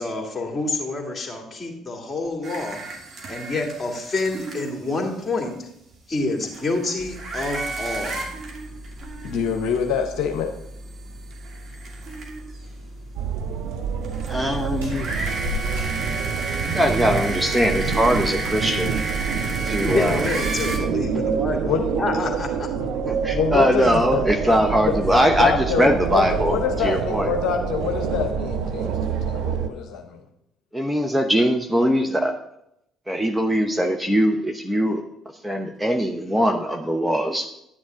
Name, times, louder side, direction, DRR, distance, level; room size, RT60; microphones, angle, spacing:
voice 1, 0.0-2.8 3.3-5.7 6.1-8.2 19.9-22.7, left 3 dB, 25° left, 2 dB, 2.7 m, -27 dB
sound 1, 2.4-5.0 5.9-6.0 6.3-9.8 10.2-10.3 11.0-12.6 14.0-20.8, right 2 dB, 45° right, 2.6 m, -32 dB
sound 2, 7.0-26.8, equal, 90° right, 2.9 m, -41 dB
voice 2, 9.2-10.5 21.6-21.8 22.8-24.2 25.4-30.2, left 7 dB, 60° left, 4 dB, 0.9 m, -26 dB
sound 3, 13.2-29.7, right 6 dB, 65° right, 0.7 m, -27 dB
voice 3, 14.3-15.1 16.6-19.0 19.6-20.3 23.1-27.3 30.7-32.3 33.1-35.0 35.4-37.5, equal, 10° right, 4 dB, 1.1 m, -21 dB
10.5 x 9.8 x 3.8 m, 0.77 s
figure-of-eight pair, 50°, 0 cm